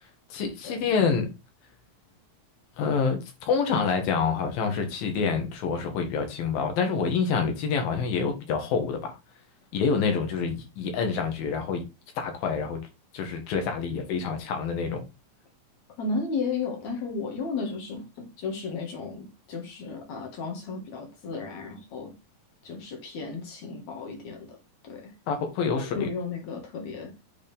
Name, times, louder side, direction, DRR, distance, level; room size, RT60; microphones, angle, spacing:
voice 1, 0.3-1.3 2.8-9.1 9.7-11.8 12.2-12.8 13.1-15.0 25.3-26.1, left 5 dB, 75° left, 3.2 m, -27 dB
voice 2, 16.0-22.1 22.6-24.6 24.8-25.1 25.6-27.1, left 4 dB, 55° left, 2.8 m, -34 dB
8.4 x 4.1 x 3.5 m
omnidirectional pair, 4.2 m